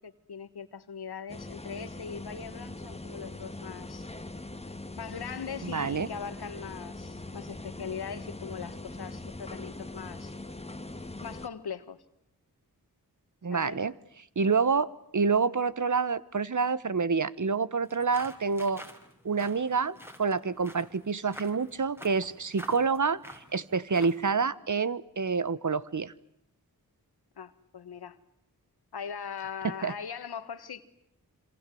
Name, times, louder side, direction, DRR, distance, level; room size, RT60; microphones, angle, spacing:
voice 1, 0.0-4.1 5.0-10.3 11.2-12.0 13.5-13.8 27.4-28.2 28.9-30.8, left 7 dB, 80° left, 1.7 m, -40 dB
sound 1, 1.3-11.5, left 2 dB, 15° left, 1.9 m, -42 dB
voice 2, 5.6-6.1 13.4-13.9 14.4-18.8 19.2-23.2 23.5-26.1 29.8-29.9, right 5 dB, 50° right, 1.3 m, -27 dB
sound 2, 17.8-24.3, equal, 5° right, 4.9 m, -49 dB
26.5 x 26.5 x 7.8 m
cardioid pair, 45°, 38 cm